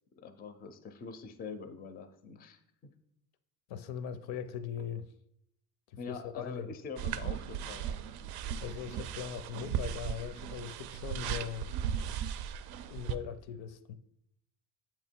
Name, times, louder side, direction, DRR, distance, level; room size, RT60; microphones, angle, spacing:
voice 1, 0.2-2.6 6.0-8.2, left 5 dB, 25° left, 0.4 m, -45 dB
voice 2, 3.7-5.1 5.9-6.7 8.6-11.7 12.9-13.9, left 8 dB, 75° left, 0.6 m, -40 dB
sound 1, 7.0-13.1, right 9 dB, 75° right, 0.5 m, -37 dB
7.4 x 3.0 x 4.3 m
cardioid pair, 130°, 39 cm